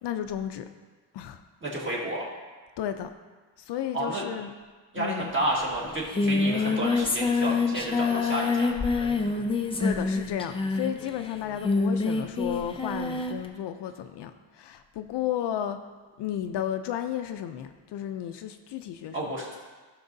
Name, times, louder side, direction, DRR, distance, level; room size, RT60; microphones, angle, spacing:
voice 1, 0.0-0.6 1.1-1.4 2.8-3.1 3.6-4.5 4.9-5.3 9.8-15.8 16.2-19.3, left 10 dB, 65° left, 8 dB, 0.5 m, -33 dB
voice 2, 1.6-2.3 3.9-4.2 4.9-8.7 19.1-19.6, right 1 dB, 25° right, -3 dB, 1.7 m, -31 dB
Singing, 5.4-5.5 5.7-13.5, left 3 dB, 15° left, 0.4 m, -27 dB
15.0 x 6.0 x 2.7 m, 1.3 s
cardioid pair, 175°, 47 cm